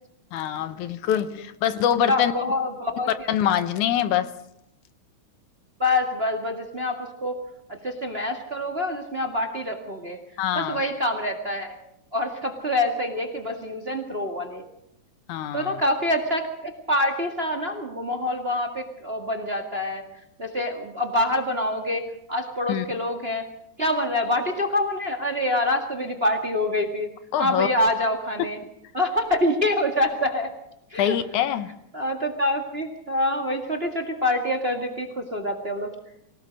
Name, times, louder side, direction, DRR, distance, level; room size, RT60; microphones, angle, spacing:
voice 1, 0.3-2.3 3.3-4.3 10.4-10.8 15.3-15.8 22.7-22.9 27.3-27.7 31.0-31.7, left 10 dB, 80° left, 12 dB, 2.4 m, -24 dB
voice 2, 2.1-3.1 5.8-7.4 7.7-10.2 10.5-11.8 12.1-14.6 15.5-20.0 20.4-23.5 23.8-27.1 27.4-28.6 28.9-30.5 30.9-31.2 31.9-35.9, left 1 dB, 25° right, 4 dB, 1.6 m, -26 dB
24.5 x 18.0 x 6.4 m, 0.78 s
omnidirectional pair, 3.6 m